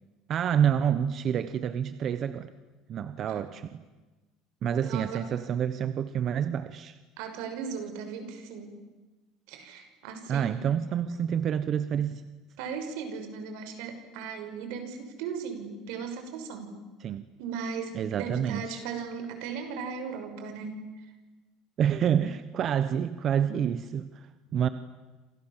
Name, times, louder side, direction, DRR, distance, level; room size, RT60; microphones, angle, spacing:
voice 1, 0.3-2.5 2.9-3.8 4.6-7.0 10.3-12.2 17.0-17.3 17.9-18.8 21.8-24.7, right 8 dB, 35° right, 12 dB, 1.1 m, -28 dB
voice 2, 4.8-5.2 7.2-8.7 9.5-10.6 12.6-16.8 17.4-20.8, right 6 dB, 75° right, 7 dB, 6.1 m, -37 dB
29.0 x 27.5 x 7.5 m, 1.2 s
cardioid pair, 160°, 0 cm